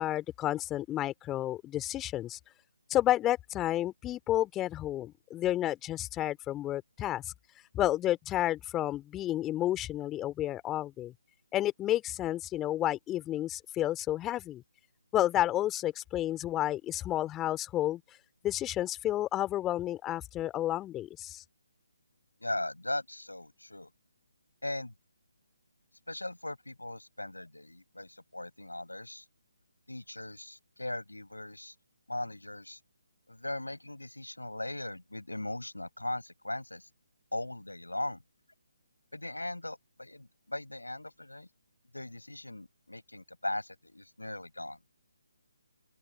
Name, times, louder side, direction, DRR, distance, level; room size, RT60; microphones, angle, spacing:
voice 1, 0.0-2.4 2.9-7.3 7.7-11.1 11.5-14.6 15.1-18.0 18.4-21.4, left 13 dB, 15° left, 2.6 m, -31 dB
voice 2, 22.4-23.9 24.6-24.9 26.1-29.3 29.9-31.7 32.1-32.8 33.3-36.9 37.3-38.2 39.1-41.5 41.9-44.8, left 1 dB, 80° left, 5.4 m, -39 dB
open air
figure-of-eight pair, 145°, 0 cm